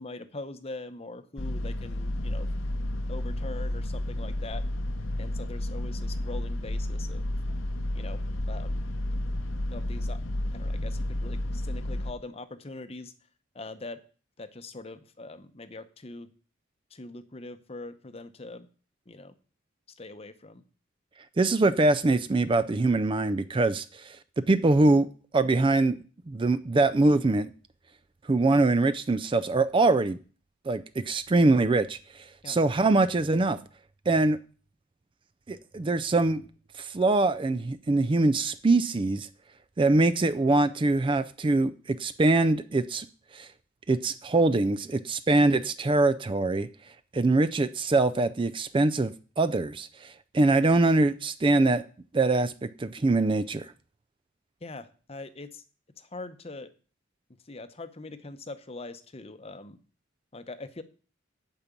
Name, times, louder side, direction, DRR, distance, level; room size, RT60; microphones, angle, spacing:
voice 1, 0.0-2.5 3.1-4.6 5.2-7.3 7.9-8.2 8.5-8.9 9.7-10.2 10.5-13.1 13.5-14.0 14.4-16.3 16.9-18.7 19.1-19.3 20.0-20.6 32.4-32.6 54.6-55.6 56.0-56.7 57.5-59.8 60.3-60.8, left 2 dB, 30° left, 10 dB, 0.8 m, -42 dB
sound 1, 1.4-12.1, left 1 dB, 80° left, 0.9 m, -31 dB
voice 2, 21.4-24.2 24.5-25.1 25.3-26.0 26.3-27.5 28.3-30.2 30.7-33.6 34.1-34.4 35.5-36.4 36.8-39.3 39.8-43.1 43.3-43.5 43.9-46.7 47.1-51.8 52.1-53.7, right 2 dB, 25° right, 13 dB, 0.4 m, -23 dB
8.8 x 5.9 x 8.3 m, 0.39 s
head